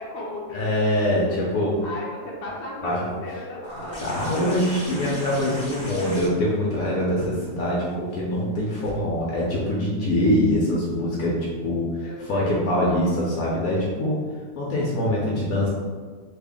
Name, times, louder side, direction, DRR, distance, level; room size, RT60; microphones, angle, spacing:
voice 1, 0.0-0.8 1.1-1.4 1.8-5.1 12.0-12.6 15.0-15.3, left 2 dB, 55° left, -5 dB, 1.0 m, -36 dB
voice 2, 0.5-1.7 2.8-3.0 4.0-14.2 14.6-15.7, left 1 dB, 75° left, -4 dB, 1.1 m, -24 dB
sound 1, 3.6-8.9 10.3-10.4, equal, 30° left, 0.5 m, -39 dB
3.1 x 2.5 x 3.5 m, 1.6 s
omnidirectional pair, 1.6 m